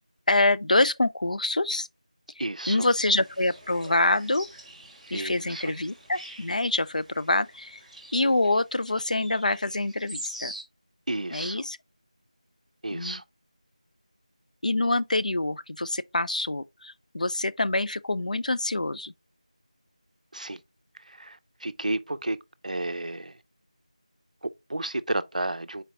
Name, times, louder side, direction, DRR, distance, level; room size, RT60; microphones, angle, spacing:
voice 1, 0.3-1.9 2.7-4.5 5.1-7.8 8.1-10.5 11.3-11.8 12.9-13.2 14.6-19.1, left 2 dB, 80° left, 0.3 m, -26 dB
voice 2, 2.4-2.9 5.1-5.7 11.1-11.6 12.8-13.2 20.3-20.6 20.9-22.4 22.6-23.4 24.4-25.8, right 2 dB, 75° right, 0.4 m, -32 dB
sound 1, 2.8-10.6, right 1 dB, ahead, 0.6 m, -45 dB
4.4 x 3.8 x 2.8 m
figure-of-eight pair, 175°, 4 cm